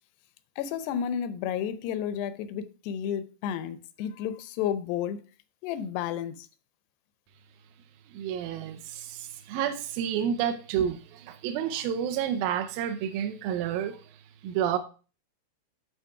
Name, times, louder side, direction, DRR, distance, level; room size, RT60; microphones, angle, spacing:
voice 1, 0.6-5.2 5.6-6.5, left 9 dB, 80° left, 2.6 m, -32 dB
voice 2, 8.1-14.8, right 9 dB, 75° right, 2.2 m, -30 dB
12.0 x 4.2 x 4.6 m
omnidirectional pair, 4.8 m